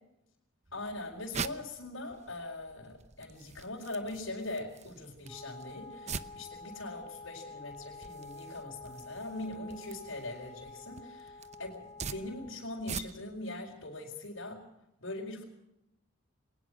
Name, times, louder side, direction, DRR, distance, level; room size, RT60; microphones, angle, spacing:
voice 1, 0.7-14.6 15.0-15.4, left 2 dB, 75° left, -3 dB, 4.5 m, -41 dB
sound 1, 0.7-13.4, right 6 dB, 35° right, 0.8 m, -45 dB
Wind instrument woodwind instrument, 5.2-12.7, left 3 dB, 5° left, 4.9 m, -49 dB
22.0 x 19.5 x 6.2 m, 0.84 s
head